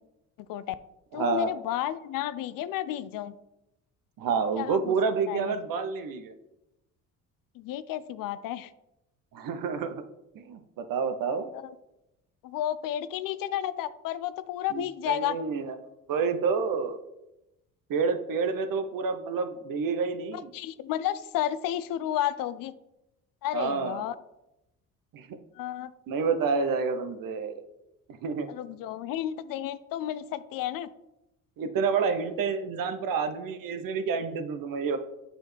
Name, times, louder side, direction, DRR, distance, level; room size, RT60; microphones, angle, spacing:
voice 1, 0.4-0.7 1.1-3.3 4.3-4.9 5.3-5.6 7.6-8.7 12.4-15.4 20.3-22.7 23.4-24.1 25.6-25.9 28.5-30.9, left 12 dB, 60° left, 14 dB, 0.5 m, -32 dB
voice 2, 1.1-1.5 4.2-6.3 9.3-10.0 10.3-11.5 14.7-15.8 16.1-17.0 17.9-20.5 23.5-24.1 25.1-25.4 26.1-27.6 28.2-28.5 31.6-35.0, right 5 dB, 60° right, 9 dB, 0.9 m, -29 dB
7.4 x 5.0 x 3.3 m, 0.91 s
hypercardioid pair, 55°, 39 cm